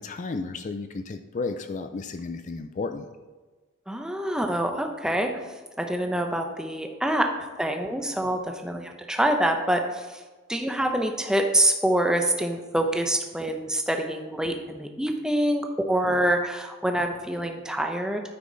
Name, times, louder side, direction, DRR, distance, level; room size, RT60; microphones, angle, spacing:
voice 1, 0.0-3.1, left 3 dB, 35° left, 8 dB, 0.4 m, -33 dB
voice 2, 3.9-7.3 7.6-8.8 9.1-10.1 10.5-18.2, right 1 dB, 5° right, 4 dB, 0.7 m, -26 dB
9.3 x 5.7 x 4.0 m, 1.3 s
head